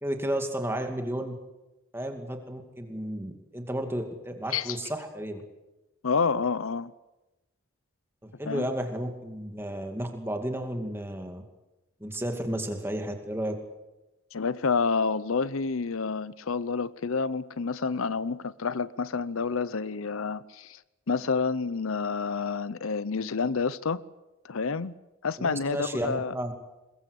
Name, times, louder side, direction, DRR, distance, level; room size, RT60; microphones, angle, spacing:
voice 1, 0.0-1.4 1.9-5.4 8.2-11.4 12.0-13.5 25.4-26.5, right 1 dB, 10° right, 2.4 m, -32 dB
voice 2, 6.0-6.9 8.5-8.6 14.3-20.8 21.1-24.0 24.4-24.9 25.2-26.3, left 5 dB, 75° left, 0.7 m, -29 dB
22.0 x 21.5 x 8.2 m
head